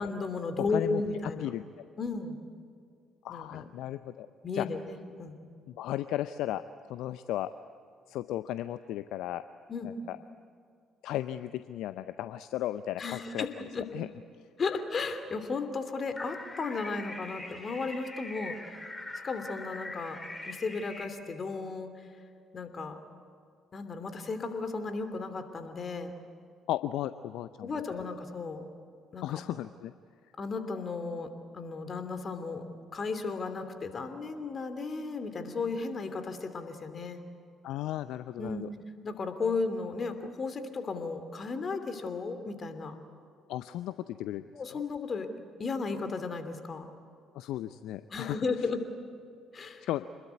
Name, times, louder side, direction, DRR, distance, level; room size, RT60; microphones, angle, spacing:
voice 1, 0.0-1.5 2.0-2.4 3.3-3.7 4.4-5.4 9.7-9.9 13.0-13.8 14.6-18.6 19.2-20.2 20.5-21.9 22.5-23.0 23.7-26.1 27.6-28.6 29.1-29.4 30.4-32.6 32.9-37.2 38.4-38.6 39.0-43.0 44.5-45.3 45.6-46.9 48.1-48.8 49.5-49.9, left 4 dB, 40° left, 9 dB, 2.9 m, -34 dB
voice 2, 0.6-1.0 1.4-1.6 3.2-4.3 4.5-4.7 5.7-6.6 6.9-7.5 8.1-9.4 9.8-10.2 11.0-13.5 13.9-14.1 26.7-27.7 29.2-29.9 37.6-38.7 43.5-44.4 44.7-44.8 47.3-48.4 49.8-50.1, left 13 dB, 65° left, 13 dB, 0.5 m, -35 dB
sound 1, 16.2-21.0, left 2 dB, 20° left, 3.5 m, -43 dB
27.0 x 21.0 x 9.5 m, 2.4 s
figure-of-eight pair, 50°, 0 cm